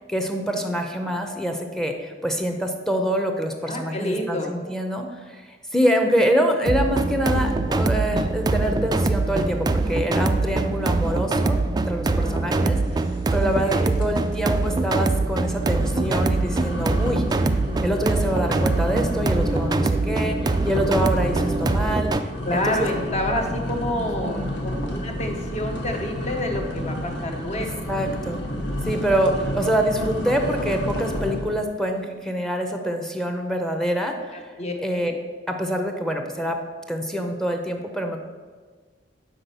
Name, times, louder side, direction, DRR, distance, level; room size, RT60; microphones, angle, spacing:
voice 1, 0.0-12.8 13.3-17.2 17.8-22.1 22.5-22.9 23.9-24.5 27.9-28.4 28.8-34.5 34.8-35.1 35.5-36.6 36.9-38.2, equal, 5° left, 4 dB, 0.7 m, -25 dB
voice 2, 3.6-4.5 12.2-12.7 13.3-13.9 22.4-27.9 34.3-34.7 35.0-35.1, left 1 dB, 40° left, 3 dB, 1.0 m, -29 dB
sound 1, 6.7-22.2, right 3 dB, 25° right, 0.3 m, -23 dB
sound 2, 13.3-13.7 14.0-14.4 14.8-14.9 15.5-31.6, equal, 70° left, 1.1 m, -31 dB
5.9 x 5.2 x 6.8 m, 1.5 s
head